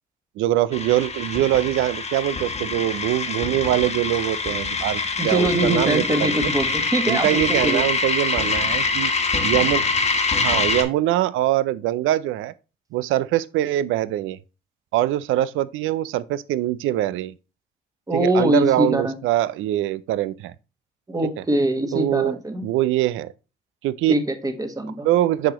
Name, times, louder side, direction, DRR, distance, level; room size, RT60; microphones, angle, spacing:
voice 1, 0.4-6.5 7.1-9.1 9.4-9.8 10.4-12.5 12.9-14.4 14.9-17.3 18.1-20.5 21.9-23.3 23.8-24.1 25.0-25.5, right 14 dB, 85° right, 0.4 m, -23 dB
sound 1, 0.7-10.8, left 4 dB, 35° left, 1.3 m, -24 dB
voice 2, 5.2-7.3 7.6-7.8 18.1-19.1 21.1-22.6 24.1-25.1, right 1 dB, 20° right, 1.3 m, -23 dB
7.6 x 4.9 x 3.0 m
cardioid pair, 90°, 20 cm